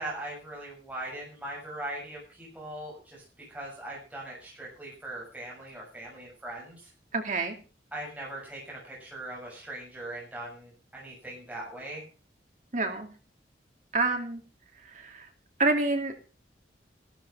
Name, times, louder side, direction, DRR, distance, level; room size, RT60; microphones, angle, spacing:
voice 1, 0.0-3.2 3.5-6.9 7.9-12.0, right 1 dB, 10° right, -5 dB, 6.8 m, -40 dB
voice 2, 7.1-7.5 12.7-13.1 13.9-14.4 15.0-15.3 15.6-16.1, right 3 dB, 40° right, 4 dB, 2.5 m, -27 dB
15.5 x 12.5 x 5.6 m, 0.36 s
head